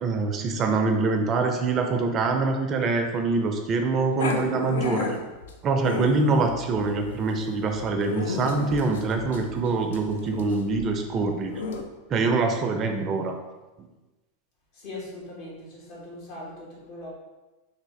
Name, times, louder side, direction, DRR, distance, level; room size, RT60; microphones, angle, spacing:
voice 1, 0.0-5.2 5.6-11.5 12.1-13.4, right 3 dB, 35° right, 5 dB, 0.4 m, -24 dB
Growling, 4.2-11.8, left 4 dB, 75° left, 0.4 m, -33 dB
voice 2, 14.7-17.1, left 1 dB, 55° left, -5 dB, 1.3 m, -40 dB
3.5 x 2.4 x 3.1 m, 1.1 s
hypercardioid pair, 95°, 0 cm